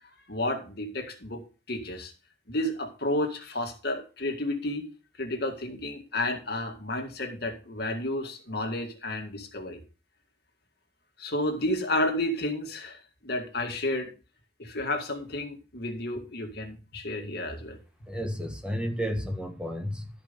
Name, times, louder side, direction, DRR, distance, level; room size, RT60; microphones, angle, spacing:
voice 1, 0.3-1.4 1.7-2.1 2.5-4.9 5.2-9.8 11.2-14.1 14.6-17.8, left 1 dB, 65° left, 2.0 m, -31 dB
voice 2, 18.1-20.1, equal, 5° right, 1.3 m, -32 dB
12.5 x 5.5 x 5.2 m
head